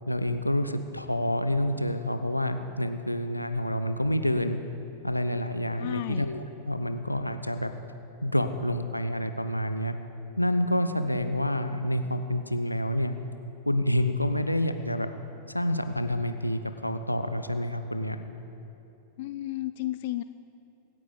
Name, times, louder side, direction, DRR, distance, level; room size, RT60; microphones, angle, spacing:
voice 1, 0.1-4.6 5.0-7.7 8.2-9.9 10.4-13.1 13.7-15.1 15.5-18.2, left 1 dB, 85° left, 9 dB, 0.7 m, -28 dB
voice 2, 5.8-6.3 19.2-20.2, left 16 dB, 50° left, 12 dB, 0.3 m, -33 dB
24.5 x 9.7 x 4.0 m, 2.8 s
figure-of-eight pair, 90°, 0 cm